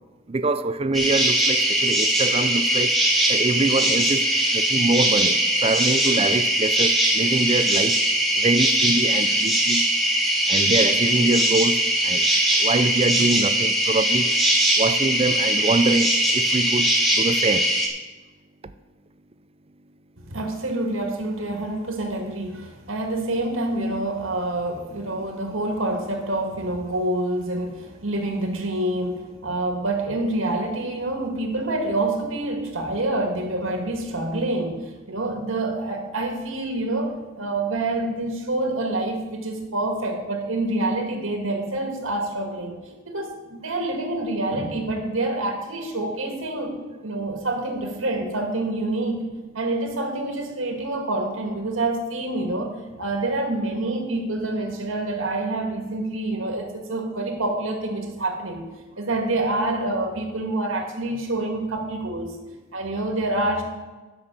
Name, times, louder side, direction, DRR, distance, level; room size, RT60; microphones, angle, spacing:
voice 1, 0.3-3.0 3.3-8.0 8.4-9.8 10.5-12.3 12.6-14.3 14.8-17.7, right 2 dB, 30° right, 0.5 m, -24 dB
sound 1, 0.9-17.9, right 1 dB, ahead, 1.6 m, -21 dB
voice 2, 20.2-42.8 43.1-49.3 49.5-58.7 59.0-62.3 62.7-63.6, right 2 dB, 85° right, 2.1 m, -27 dB
11.0 x 6.2 x 7.5 m
head